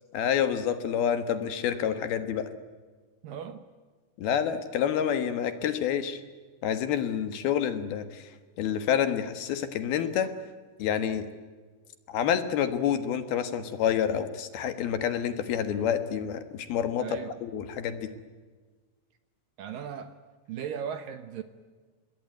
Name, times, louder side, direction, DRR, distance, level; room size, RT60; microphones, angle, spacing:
voice 1, 0.1-2.5 4.2-6.2 6.6-8.3 8.6-10.3 10.8-11.3 12.1-18.1, left 9 dB, 65° left, 3.1 m, -28 dB
voice 2, 3.2-3.7 17.0-17.4 19.6-20.2 20.5-21.4, right 8 dB, 70° right, 2.3 m, -37 dB
27.0 x 21.0 x 9.3 m
omnidirectional pair, 5.0 m